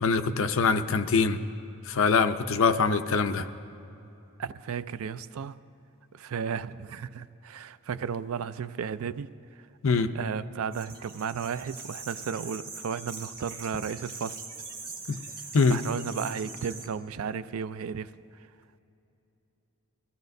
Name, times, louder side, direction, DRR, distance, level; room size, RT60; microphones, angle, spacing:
voice 1, 0.0-1.4 1.9-3.5 9.8-10.1 15.1-15.2 15.5-15.8, left 4 dB, 65° left, 9 dB, 0.6 m, -23 dB
voice 2, 4.4-5.6 6.1-9.3 10.1-14.4 15.7-18.1, right 6 dB, 85° right, 15 dB, 0.4 m, -34 dB
sound 1, 10.7-16.9, right 4 dB, 45° right, 1.2 m, -42 dB
21.5 x 15.5 x 2.6 m, 2.9 s
head